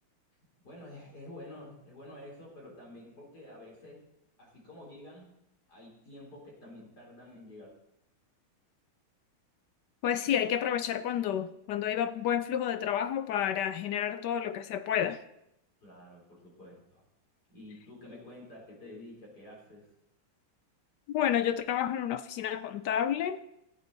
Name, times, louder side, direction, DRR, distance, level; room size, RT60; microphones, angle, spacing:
voice 1, 0.6-4.1 4.4-5.3 5.7-7.7 15.8-17.0 17.5-19.9, left 1 dB, 50° left, -2 dB, 4.3 m, -49 dB
voice 2, 10.0-15.2 21.1-23.4, left 9 dB, 75° left, 12 dB, 1.0 m, -30 dB
19.0 x 8.2 x 4.0 m, 0.83 s
omnidirectional pair, 2.3 m